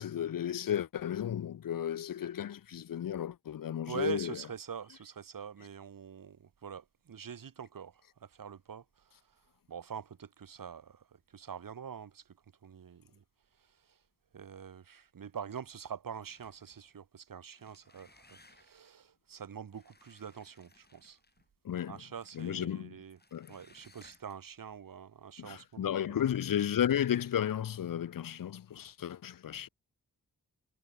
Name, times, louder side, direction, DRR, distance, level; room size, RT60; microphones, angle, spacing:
voice 1, 0.0-4.4 21.6-22.0 22.3-23.0 23.3-23.5 25.4-29.7, left 10 dB, 80° left, 0.8 m, -33 dB
voice 2, 3.9-8.8 9.7-11.0 11.3-12.2 12.6-13.2 14.3-21.2 21.9-23.2 23.5-26.2, right 7 dB, 80° right, 2.3 m, -44 dB
sound 1, 16.2-16.8 17.4-18.9 19.7-21.5 22.2-22.6 23.2-24.5, left 2 dB, 30° left, 5.5 m, -63 dB
cardioid pair, 70°, 33 cm